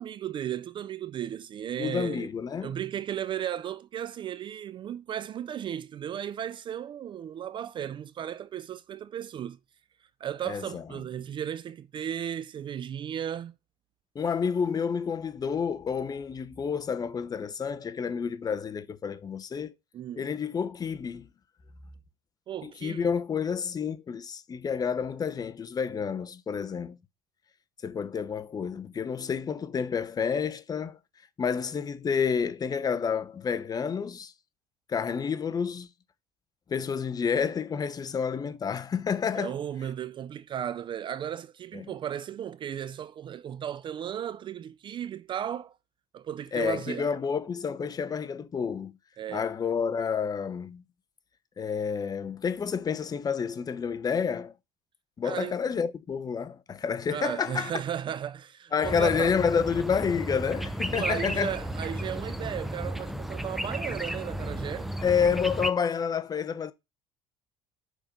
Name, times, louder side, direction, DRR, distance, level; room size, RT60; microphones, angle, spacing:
voice 1, 0.0-2.3 2.6-9.6 10.2-13.6 19.9-20.3 22.5-23.1 39.3-45.8 46.1-47.2 49.2-49.5 55.2-55.6 57.1-59.4 60.9-64.9, right 10 dB, 35° right, 0.4 m, -35 dB
voice 2, 1.8-2.7 10.5-10.8 14.1-19.7 20.2-21.3 22.6-27.0 27.8-31.0 31.4-34.3 34.9-35.9 36.7-39.6 41.7-41.9 46.5-48.9 49.3-50.8 51.6-54.5 55.2-57.7 58.7-61.5 65.0-66.7, left 6 dB, 30° left, 0.8 m, -29 dB
sound 1, 58.8-65.7, right 1 dB, ahead, 0.7 m, -34 dB
6.4 x 4.3 x 5.1 m
cardioid pair, 115°, 14 cm